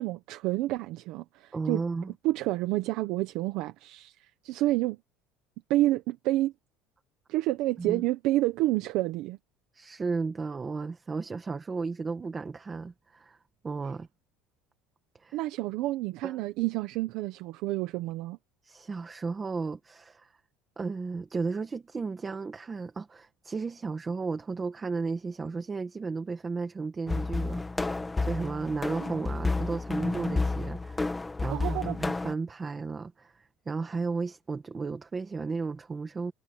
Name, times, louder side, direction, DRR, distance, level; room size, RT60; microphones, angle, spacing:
voice 1, 0.0-1.8 2.2-5.0 5.7-6.5 7.3-9.4 15.3-18.4 31.5-32.0, right 17 dB, 55° right, 1.0 m, -29 dB
voice 2, 1.5-2.1 7.8-8.0 9.7-13.4 13.6-14.1 15.2-15.4 16.2-16.4 18.6-20.3 20.8-36.3, right 4 dB, 15° right, 1.5 m, -34 dB
sound 1, 27.1-32.3, left 3 dB, 10° left, 1.6 m, -31 dB
cardioid pair, 175°, 0 cm